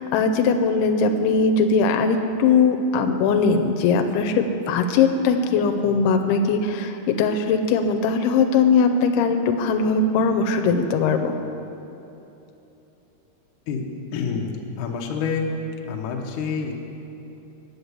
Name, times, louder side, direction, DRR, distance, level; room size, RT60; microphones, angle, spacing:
voice 1, 0.0-11.4, left 4 dB, 85° left, 5 dB, 2.6 m, -20 dB
voice 2, 14.1-15.5 15.9-16.8, left 6 dB, 70° left, 2 dB, 2.1 m, -27 dB
9.3 x 7.7 x 8.1 m, 2.9 s
omnidirectional pair, 4.5 m